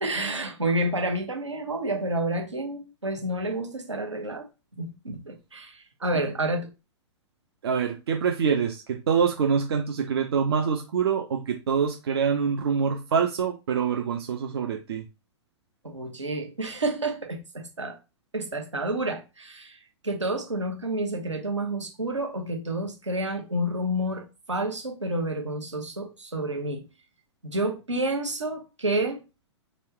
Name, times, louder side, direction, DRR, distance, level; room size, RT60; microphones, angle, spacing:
voice 1, 0.0-4.5 4.8-6.7 15.8-18.0 18.3-26.8 27.4-29.2, right 1 dB, 85° right, 1.1 m, -29 dB
voice 2, 7.6-15.0, right 6 dB, 60° right, 0.6 m, -25 dB
4.0 x 2.3 x 3.3 m
figure-of-eight pair, 110°, 15 cm